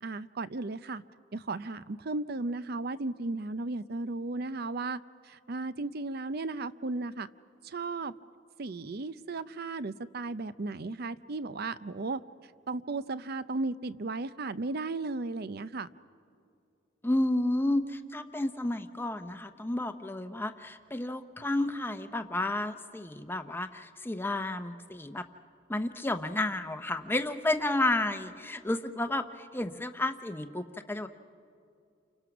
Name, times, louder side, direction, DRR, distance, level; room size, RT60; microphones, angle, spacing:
voice 1, 0.0-1.0 1.3-7.3 7.6-8.1 8.6-12.2 12.7-15.9, right 3 dB, 55° right, 15 dB, 0.6 m, -35 dB
voice 2, 17.0-25.3 25.7-31.1, left 1 dB, 10° left, 8 dB, 0.8 m, -31 dB
30.0 x 25.0 x 6.0 m, 2.4 s
head